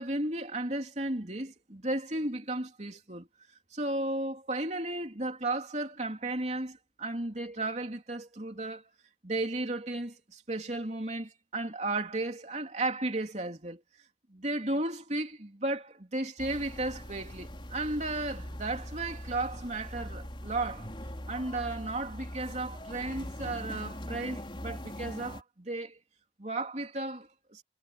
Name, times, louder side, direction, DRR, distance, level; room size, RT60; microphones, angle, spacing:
voice 1, 0.0-3.3 3.7-8.8 9.2-13.8 14.3-20.9 21.3-26.0 26.4-27.6, right 2 dB, 40° right, 3.3 m, -34 dB
sound 1, 16.4-25.4, equal, 30° left, 4.7 m, -42 dB
head